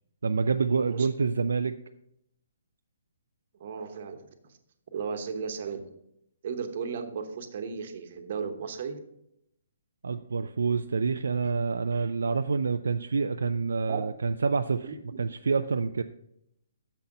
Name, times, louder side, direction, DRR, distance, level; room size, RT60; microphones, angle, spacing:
voice 1, 0.2-1.8 10.0-14.9 15.2-16.0, right 5 dB, 80° right, 8 dB, 0.3 m, -27 dB
voice 2, 3.6-4.5 4.9-5.9 6.4-9.0 13.9-14.0 14.8-15.2, right 6 dB, 50° right, 7 dB, 1.1 m, -35 dB
7.0 x 5.9 x 5.3 m, 0.77 s
hypercardioid pair, 145°, 0 cm